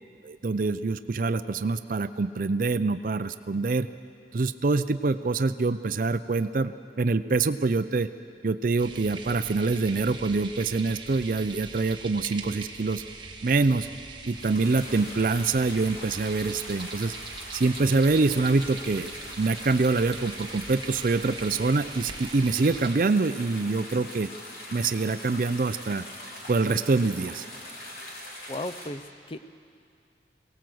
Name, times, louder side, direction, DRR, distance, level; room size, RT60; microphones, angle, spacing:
voice 1, 0.2-3.9 4.3-8.1 8.4-13.0 13.4-13.9 14.3-17.1 17.5-24.3 24.7-26.1 26.5-27.4, right 3 dB, 50° right, 12 dB, 0.5 m, -25 dB
sound 1, 8.8-23.0, right 4 dB, 25° right, 1.4 m, -42 dB
sound 2, 14.3-28.9, left 1 dB, 60° left, 3.7 m, -42 dB
voice 2, 28.5-29.4, left 1 dB, 30° left, 13 dB, 0.5 m, -35 dB
23.0 x 18.0 x 7.8 m, 2.5 s
head